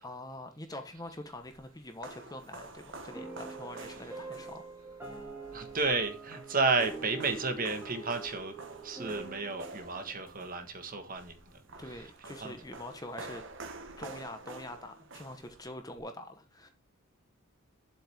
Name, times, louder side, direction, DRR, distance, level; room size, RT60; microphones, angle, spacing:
voice 1, 0.0-4.6 5.1-5.2 11.8-13.4 14.0-16.7, left 1 dB, 15° left, 1.1 m, -44 dB
sound 1, 1.0-16.0, right 3 dB, 55° right, 1.3 m, -49 dB
sound 2, 3.1-11.7, right 4 dB, 10° right, 2.3 m, -46 dB
voice 2, 5.5-8.5 8.8-11.3 12.4-12.5, right 3 dB, 40° right, 1.5 m, -32 dB
10.0 x 7.8 x 3.6 m
head